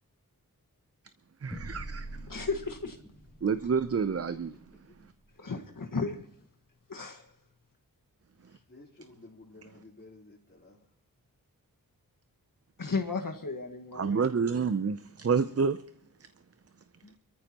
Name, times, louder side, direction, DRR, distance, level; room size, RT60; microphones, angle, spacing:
voice 1, 1.4-2.0 3.4-4.5 14.0-15.0 15.2-15.8, right 5 dB, 40° right, 0.6 m, -28 dB
sound 1, 1.5-6.3, right 1 dB, ahead, 3.2 m, -46 dB
voice 2, 2.3-3.0 5.4-6.2 6.9-7.3 12.8-14.3 17.0-17.1, left 4 dB, 65° left, 1.6 m, -34 dB
voice 3, 8.7-10.9, left 2 dB, 35° left, 3.6 m, -53 dB
25.5 x 14.0 x 2.9 m
wide cardioid pair, 70°, 36 cm